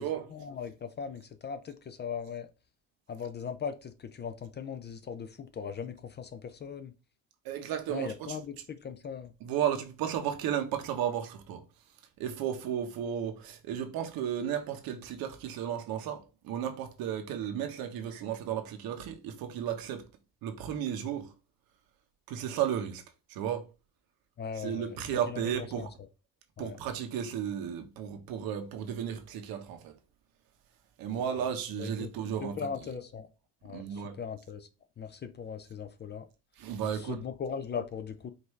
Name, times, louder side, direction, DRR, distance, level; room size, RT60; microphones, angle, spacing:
voice 1, 0.3-2.5 3.1-6.9 7.9-9.3 24.4-25.0 25.3-25.5 25.8-25.9 26.6-26.8 31.1-31.5 31.8-32.1 32.4-33.3 33.6-34.7 35.0-36.3 36.9-38.3, left 6 dB, 30° left, 0.4 m, -39 dB
voice 2, 7.4-8.4 9.4-11.6 12.2-20.1 20.4-21.3 22.3-23.0 23.3-23.7 24.6-25.9 26.6-29.9 31.0-32.6 33.7-34.2 36.6-37.2, right 9 dB, 70° right, 1.0 m, -34 dB
5.1 x 2.6 x 3.1 m
cardioid pair, 110°, 36 cm